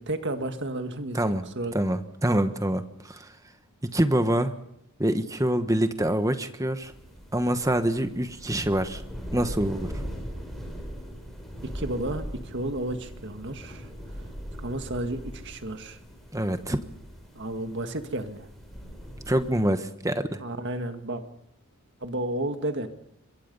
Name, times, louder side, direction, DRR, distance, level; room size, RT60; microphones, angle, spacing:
voice 1, 0.0-1.7 11.6-13.9 14.6-16.0 17.3-18.5 20.4-21.2 22.0-22.9, right 1 dB, 50° right, 7 dB, 1.8 m, -32 dB
voice 2, 1.1-1.5 1.7-3.3 3.8-4.5 5.0-6.9 7.3-9.0 9.3-9.9 16.3-16.8 19.3-20.4, right 1 dB, 15° right, 9 dB, 1.3 m, -25 dB
sound 1, 6.8-19.5, equal, ahead, 6.4 m, -40 dB
26.0 x 23.0 x 5.5 m, 0.77 s
head